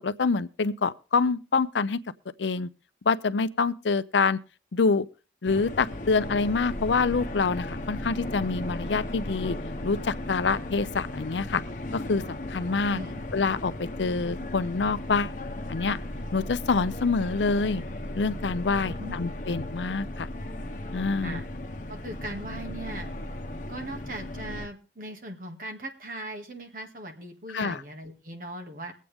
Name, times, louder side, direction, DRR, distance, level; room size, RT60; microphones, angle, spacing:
voice 1, 0.0-2.0 2.4-2.7 3.1-4.4 4.7-5.1 5.4-9.6 9.8-11.6 11.9-13.0 13.3-13.7 14.0-15.3 15.7-16.0 16.3-17.8 18.2-20.3 20.9-21.4 27.5-27.8, left 4 dB, 85° left, 0.6 m, -26 dB
sound 1, 5.5-24.7, left 1 dB, 45° left, 1.0 m, -36 dB
voice 2, 12.9-13.2 18.9-19.2 21.2-21.5 21.9-23.1 23.7-28.9, right 1 dB, 50° right, 2.0 m, -39 dB
22.0 x 8.3 x 3.5 m
head